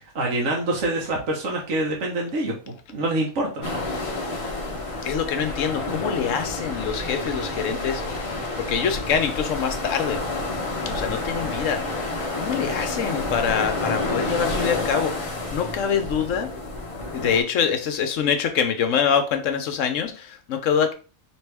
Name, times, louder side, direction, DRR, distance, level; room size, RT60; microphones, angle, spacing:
voice 1, 0.1-3.8 4.3-4.9, right 2 dB, 60° right, 1.2 m, -26 dB
sound 1, 3.6-17.4, left 2 dB, 30° left, 0.7 m, -29 dB
voice 2, 5.0-8.0 8.6-10.2 10.9-16.5 17.1-20.9, left 7 dB, 70° left, 1.0 m, -25 dB
4.4 x 3.0 x 3.3 m
omnidirectional pair, 1.5 m